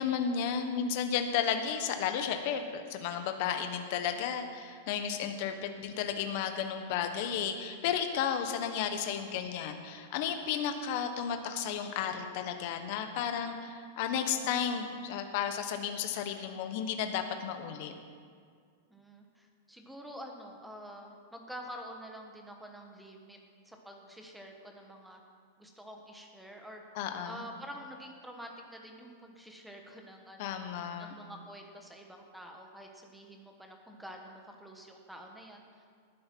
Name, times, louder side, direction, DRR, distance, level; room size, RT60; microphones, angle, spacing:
voice 1, 0.0-17.9 27.0-27.4 30.4-31.1, left 8 dB, 40° left, 6 dB, 1.2 m, -33 dB
voice 2, 18.9-23.4 23.6-25.2 25.6-26.8 27.2-30.7 31.0-35.8, equal, ahead, 2 dB, 1.2 m, -48 dB
18.5 x 10.0 x 4.6 m, 2.1 s
supercardioid pair, 175°, 0 cm